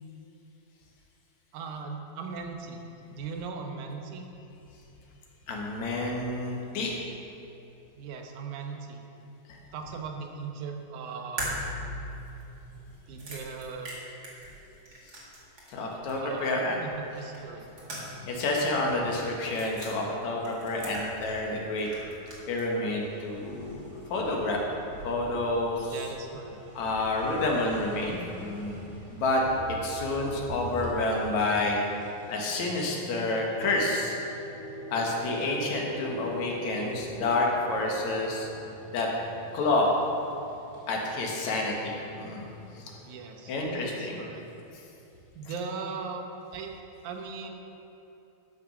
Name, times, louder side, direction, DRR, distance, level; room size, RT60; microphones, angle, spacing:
voice 1, 1.5-2.8 3.1-4.3 8.0-9.0 9.7-11.9 13.1-13.9 16.2-17.7 25.8-26.6 43.0-44.4 45.4-46.3 46.5-46.7 47.0-47.5, right 5 dB, 90° right, 3 dB, 2.4 m, -39 dB
voice 2, 5.5-7.0 15.7-16.8 18.2-21.9 22.5-24.6 25.0-26.0 26.8-28.8 29.1-29.4 29.8-31.8 32.3-34.2 34.9-38.5 38.9-39.1 39.5-40.0 40.9-42.5 43.5-44.3, left 2 dB, 75° left, -1 dB, 2.6 m, -29 dB
sound 1, 11.4-15.8 16.1-16.2 17.3-18.3 18.6-18.7 19.4-19.9 20.4-21.5 21.8-22.7, right 1 dB, 35° right, 2.2 m, -39 dB
sound 2, 17.3-31.2, right 1 dB, 70° right, 3.4 m, -47 dB
sound 3, 26.8-42.8, left 1 dB, 15° left, 2.2 m, -45 dB
12.0 x 6.1 x 6.0 m, 2.9 s
omnidirectional pair, 3.4 m